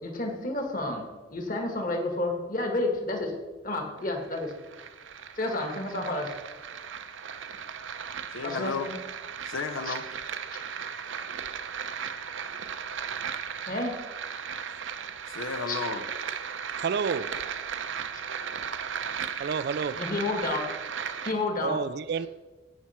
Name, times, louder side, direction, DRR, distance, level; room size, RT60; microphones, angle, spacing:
voice 1, 0.0-3.3 3.6-4.5 5.3-6.4 8.4-9.0 9.8-10.0 10.6-10.7 13.7-14.0 15.7-15.8 19.9-20.7 21.2-22.3, left 2 dB, 45° left, 1.7 m, -31 dB
sound 1, 4.0-21.3, right 7 dB, 70° right, 0.7 m, -36 dB
voice 2, 8.3-8.9 9.4-10.1 15.3-16.1, left 4 dB, 75° left, 0.6 m, -33 dB
voice 3, 16.8-17.3 19.4-20.0 21.6-22.3, right 6 dB, 55° right, 0.3 m, -29 dB
15.5 x 5.9 x 4.4 m
head